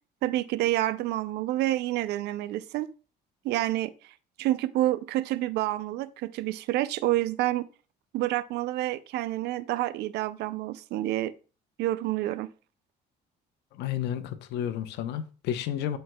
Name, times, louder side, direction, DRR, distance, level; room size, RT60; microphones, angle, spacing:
voice 1, 0.2-2.9 3.4-7.7 8.1-11.3 11.8-12.5, right 15 dB, 80° right, 0.5 m, -28 dB
voice 2, 13.7-16.0, left 10 dB, 85° left, 0.9 m, -31 dB
13.0 x 4.5 x 2.2 m
cardioid pair, 110°, 17 cm